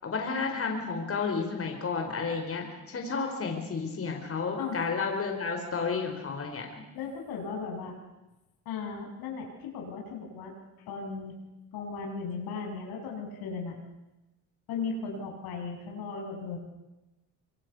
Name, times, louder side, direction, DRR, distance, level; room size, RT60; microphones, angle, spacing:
voice 1, 0.0-6.7, left 4 dB, 40° left, 2 dB, 5.2 m, -31 dB
voice 2, 6.9-8.0 8.7-10.5 10.9-11.3 11.7-13.8 14.7-16.6, left 5 dB, 85° left, 1 dB, 7.3 m, -36 dB
26.0 x 23.0 x 8.3 m, 1.0 s
cardioid pair, 100°, 36 cm